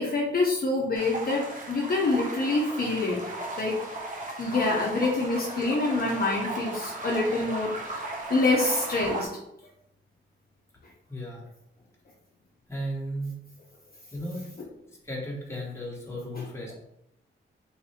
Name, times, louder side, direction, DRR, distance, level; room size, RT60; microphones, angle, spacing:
voice 1, 0.0-3.2 3.6-3.8 4.4-9.3 16.3-16.5, left 2 dB, 45° left, -2 dB, 0.7 m, -26 dB
sound 1, 0.9-9.3, right 2 dB, 40° right, 1.0 m, -36 dB
voice 2, 11.1-11.4 12.7-13.3 14.1-14.4 15.0-16.7, equal, 10° left, -4 dB, 1.3 m, -34 dB
3.2 x 2.6 x 4.3 m, 0.79 s
wide cardioid pair, 100°, 21 cm